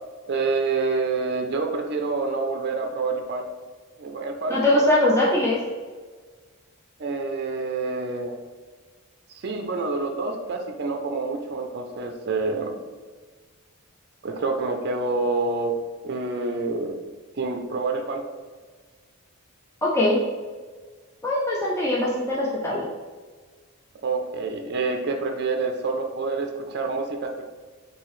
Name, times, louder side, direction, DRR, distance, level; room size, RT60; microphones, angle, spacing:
voice 1, 0.3-3.4 4.0-4.9 7.0-8.4 9.4-12.7 14.2-15.7 16.0-17.0 17.4-18.2 24.0-27.4, right 3 dB, 50° right, 4 dB, 0.5 m, -27 dB
voice 2, 4.5-5.6 19.8-20.2 21.2-22.8, left 1 dB, 10° left, -5 dB, 0.5 m, -21 dB
5.9 x 2.7 x 3.1 m, 1.5 s
head